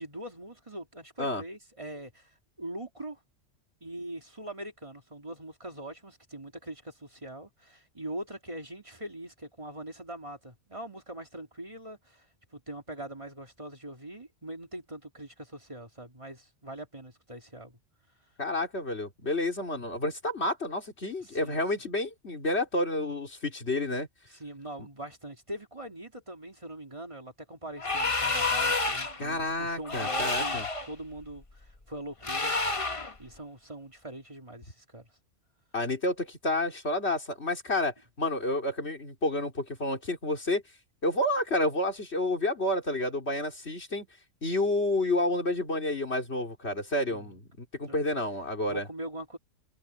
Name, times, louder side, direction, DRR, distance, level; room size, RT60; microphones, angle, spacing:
voice 1, 0.0-3.2 3.8-12.3 12.5-17.8 21.2-21.6 24.3-32.5 33.2-35.1 47.1-47.3 47.8-48.0 48.7-49.4, right 1 dB, 25° right, 2.6 m, -42 dB
voice 2, 18.4-24.1 24.8-24.9 29.2-30.7 35.7-40.6 41.0-44.1 44.4-48.9, left 1 dB, 65° left, 3.9 m, -30 dB
sound 1, 27.8-29.2 29.8-30.9 32.2-33.1, left 3 dB, 30° left, 1.3 m, -29 dB
omnidirectional pair, 1.2 m